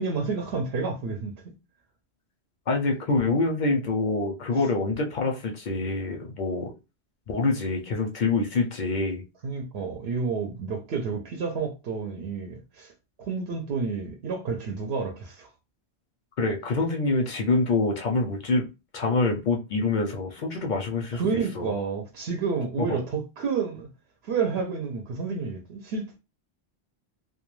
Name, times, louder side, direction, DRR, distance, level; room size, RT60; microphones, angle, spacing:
voice 1, 0.0-1.4 9.4-12.9 13.2-15.5 21.1-23.9 24.2-26.2, right 5 dB, 70° right, 0.8 m, -30 dB
voice 2, 2.7-6.7 7.3-9.2 16.4-18.7 18.9-21.2 21.6-21.7 22.9-23.0, left 3 dB, 55° left, 0.5 m, -26 dB
2.2 x 2.2 x 3.0 m
omnidirectional pair, 1.1 m